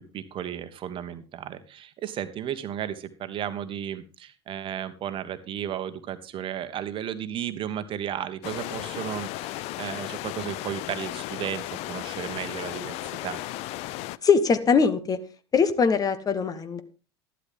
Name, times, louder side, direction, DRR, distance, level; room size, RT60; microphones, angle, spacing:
voice 1, 0.0-13.4, right 10 dB, 40° right, 10 dB, 1.4 m, -34 dB
sound 1, 8.4-14.2, left 17 dB, 45° left, 0.6 m, -35 dB
voice 2, 14.2-15.2 15.5-16.8, left 5 dB, 25° left, 12 dB, 1.3 m, -21 dB
12.5 x 11.5 x 3.6 m, 0.33 s
figure-of-eight pair, 80°, 14 cm